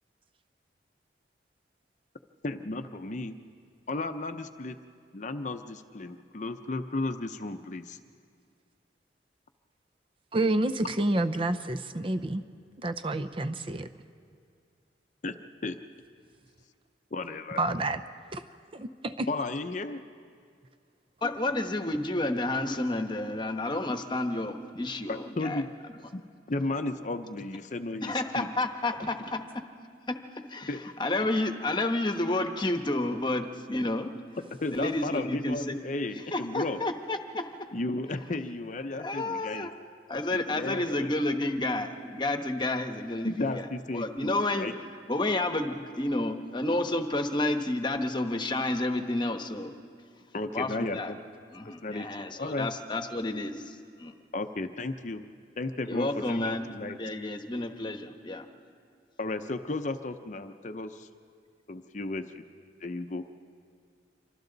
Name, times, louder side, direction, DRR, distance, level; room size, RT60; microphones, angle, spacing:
voice 1, 2.4-3.4 3.9-4.8 5.1-8.0 15.2-15.3 15.6-15.8 17.1-17.6 19.3-20.0 25.1-25.7 26.1-26.2 26.5-28.5 30.7-30.8 31.1-31.2 34.6-36.8 37.7-39.7 40.3-41.1 43.2-44.7 50.3-51.2 51.6-52.7 54.3-55.2 55.6-57.0 59.2-61.1 61.7-62.4 62.8-63.2, left 2 dB, 40° left, 8 dB, 0.7 m, -34 dB
voice 2, 10.3-12.4 12.8-13.9 17.6-18.0 18.3-18.4 18.7-19.3, right 2 dB, 30° right, 11 dB, 0.6 m, -29 dB
voice 3, 21.2-25.6 28.0-29.4 30.1-30.2 30.5-30.7 31.0-34.1 34.7-35.8 36.3-37.4 39.0-39.7 40.1-43.7 43.9-44.7 45.1-49.7 50.5-51.1 51.5-54.1 55.9-56.7 57.0-58.5, left 2 dB, 25° left, 6 dB, 1.1 m, -30 dB
27.5 x 25.0 x 4.0 m, 2.2 s
head